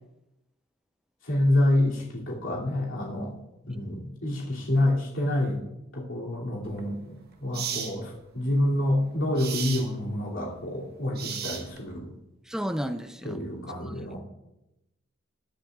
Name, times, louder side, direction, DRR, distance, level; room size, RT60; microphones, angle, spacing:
voice 1, 1.3-3.3 3.6-5.6 5.9-12.1 13.2-14.2, left 1 dB, 65° left, -5 dB, 2.7 m, -27 dB
sound 1, 6.6-6.8 7.5-7.9 9.4-9.9 11.1-11.9, right 7 dB, 50° right, 1.1 m, -34 dB
voice 2, 12.5-13.4 13.9-14.0, equal, 5° right, 7 dB, 0.5 m, -32 dB
20.5 x 10.0 x 2.4 m, 0.92 s
head